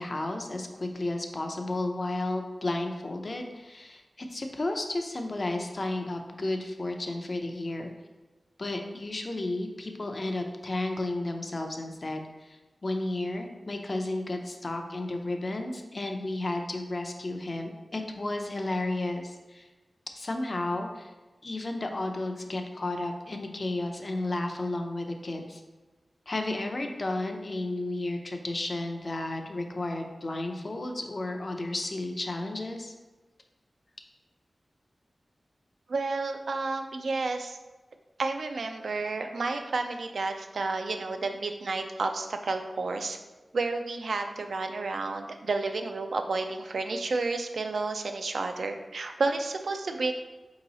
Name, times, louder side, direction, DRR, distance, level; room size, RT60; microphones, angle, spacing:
voice 1, 0.0-7.9 8.6-19.7 20.2-21.1 21.4-25.6 26.3-32.9, left 2 dB, 45° left, 4 dB, 0.5 m, -33 dB
voice 2, 35.9-37.6 38.2-43.2 43.5-50.1, right 3 dB, 85° right, 5 dB, 0.4 m, -31 dB
4.6 x 2.9 x 4.0 m, 1.2 s
wide cardioid pair, 75°, 0 cm